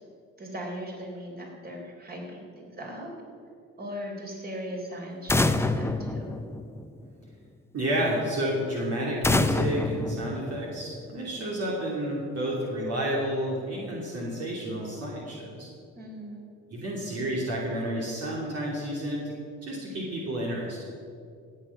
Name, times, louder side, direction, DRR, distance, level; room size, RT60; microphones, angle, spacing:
voice 1, 0.4-3.1 3.8-6.3 16.0-16.5, equal, 30° right, 0 dB, 3.8 m, -39 dB
sound 1, 5.3-7.1 9.2-11.0, left 2 dB, 10° left, 0.7 m, -27 dB
voice 2, 7.7-15.7 16.7-19.3 19.6-20.9, right 1 dB, 55° right, -4 dB, 2.8 m, -30 dB
17.0 x 7.5 x 5.9 m, 2.3 s
supercardioid pair, 70°, 30 cm